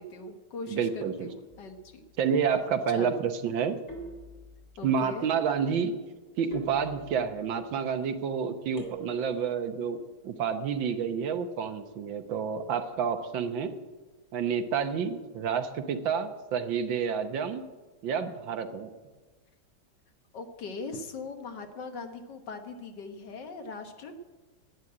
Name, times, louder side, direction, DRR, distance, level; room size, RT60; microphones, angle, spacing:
voice 1, 0.0-2.1 2.9-3.2 4.8-5.3 20.3-24.2, left 3 dB, 65° left, 6 dB, 1.9 m, -40 dB
voice 2, 0.7-1.3 2.2-3.8 4.8-5.9 6.4-10.0 10.2-13.7 14.3-17.6 18.0-18.9, right 7 dB, 80° right, 8 dB, 1.7 m, -29 dB
sound 1, 1.5-2.0 3.9-4.8 6.5-7.5 8.8-9.5, right 1 dB, 30° left, 3.8 m, -44 dB
11.0 x 9.3 x 8.7 m, 1.3 s
omnidirectional pair, 2.1 m